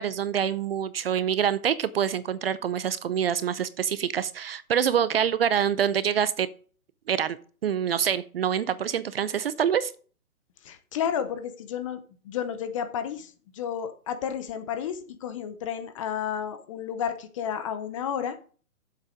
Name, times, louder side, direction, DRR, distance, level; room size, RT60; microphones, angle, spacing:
voice 1, 0.0-6.5 7.1-7.4 7.6-9.9, right 8 dB, 40° right, 16 dB, 0.6 m, -26 dB
voice 2, 10.6-18.5, left 8 dB, 20° left, 10 dB, 0.6 m, -32 dB
8.2 x 7.6 x 6.2 m, 0.41 s
hypercardioid pair, 145°, 44 cm